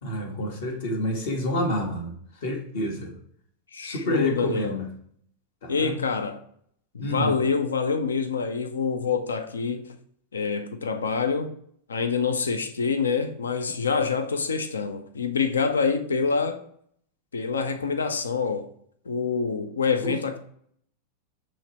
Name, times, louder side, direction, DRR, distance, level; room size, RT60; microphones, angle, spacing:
voice 1, 0.0-2.1 2.4-3.1 3.8-4.8 5.6-6.0 7.0-7.3, equal, 55° left, 1.3 m, -28 dB
voice 2, 3.7-4.8 5.7-6.4 6.9-9.9 10.3-11.5 11.9-16.6 17.3-18.7 19.1-20.4, left 5 dB, 70° left, 0.5 m, -26 dB
7.1 x 3.1 x 4.3 m
figure-of-eight pair, 90°, 0 cm